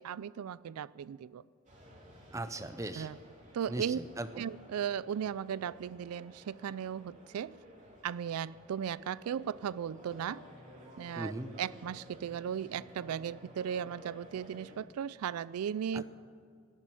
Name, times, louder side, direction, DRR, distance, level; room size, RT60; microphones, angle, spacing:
voice 1, 0.0-1.4 3.0-3.2 3.5-4.0 4.4-7.6 8.0-10.4 11.0-11.3 11.6-16.0, right 8 dB, 85° right, 0.3 m, -36 dB
sound 1, 1.7-14.8, equal, 35° right, 2.8 m, -55 dB
voice 2, 2.3-3.1 3.7-4.5 11.2-11.5 15.9-16.0, right 2 dB, 15° right, 0.6 m, -39 dB
18.0 x 7.6 x 9.5 m
head